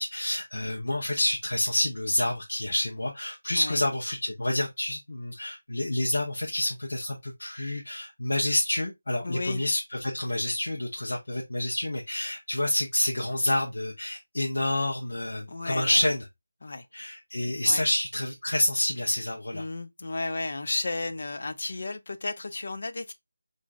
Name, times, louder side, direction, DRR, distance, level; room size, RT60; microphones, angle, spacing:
voice 1, 0.0-16.2 16.9-19.6, left 1 dB, 75° left, 0.8 m, -28 dB
voice 2, 9.2-9.6 15.5-16.0 16.6-16.9 17.7-17.8 19.5-23.1, left 3 dB, 40° left, 0.4 m, -33 dB
3.0 x 2.6 x 3.5 m
figure-of-eight pair, 180°, 0 cm